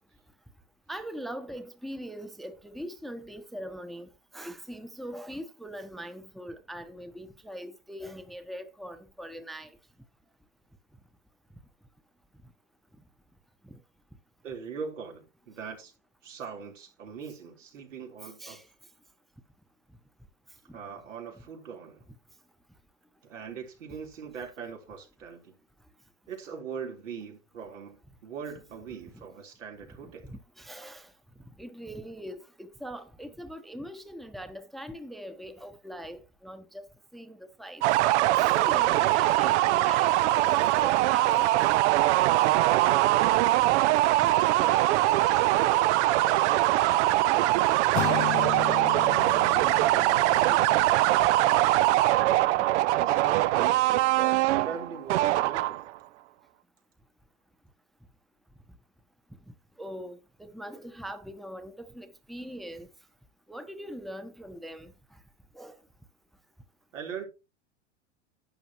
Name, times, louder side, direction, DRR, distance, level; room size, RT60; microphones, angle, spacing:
voice 1, 0.9-9.8 13.6-13.8 18.4-18.6 29.1-29.2 29.8-31.1 31.6-36.8 37.1-37.8 38.4-41.7 42.4-42.5 49.6-49.7 51.2-51.3 52.6-52.7 59.8-62.9 63.5-64.9 65.5-65.8, equal, ahead, 0.8 m, -42 dB
voice 2, 14.4-15.9 16.2-18.6 20.7-22.1 23.2-25.6 26.3-30.4 44.6-52.1 52.8-55.9 66.9-67.3, right 6 dB, 90° right, 3.7 m, -42 dB
sound 1, 37.8-56.0, right 16 dB, 70° right, 0.5 m, -22 dB
sound 2, 47.9-52.0, left 21 dB, 60° left, 0.5 m, -36 dB
11.5 x 8.6 x 2.9 m
hypercardioid pair, 110°, 37 cm